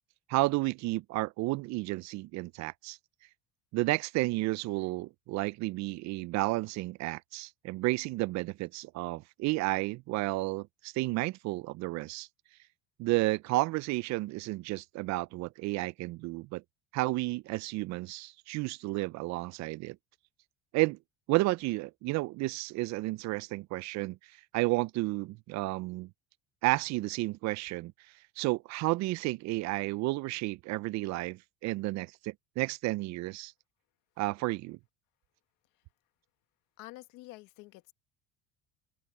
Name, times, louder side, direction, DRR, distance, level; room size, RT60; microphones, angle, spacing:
voice 1, 0.3-3.0 3.7-12.3 13.0-16.6 16.9-20.0 20.7-21.0 21.3-24.2 24.5-26.1 26.6-27.9 28.4-33.5 34.2-34.8, right 21 dB, 60° right, 0.5 m, -32 dB
voice 2, 36.8-37.9, left 20 dB, 75° left, 1.8 m, -48 dB
open air
supercardioid pair, 110°, 31 cm